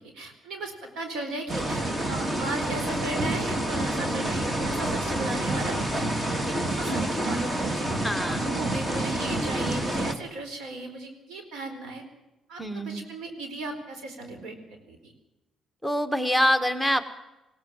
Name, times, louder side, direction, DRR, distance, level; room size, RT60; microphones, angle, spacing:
voice 1, 0.0-6.1 6.4-7.9 8.2-12.0 12.5-14.6 14.9-15.1, right 2 dB, 85° right, 6 dB, 4.3 m, -36 dB
sound 1, 1.5-10.1, right 1 dB, 30° right, 2.3 m, -28 dB
voice 2, 4.1-4.5 6.9-7.1 8.0-8.4 12.6-13.1 15.8-17.0, equal, 5° right, 6 dB, 1.5 m, -26 dB
20.0 x 17.5 x 7.4 m, 0.98 s
cardioid pair, 90°, 0 cm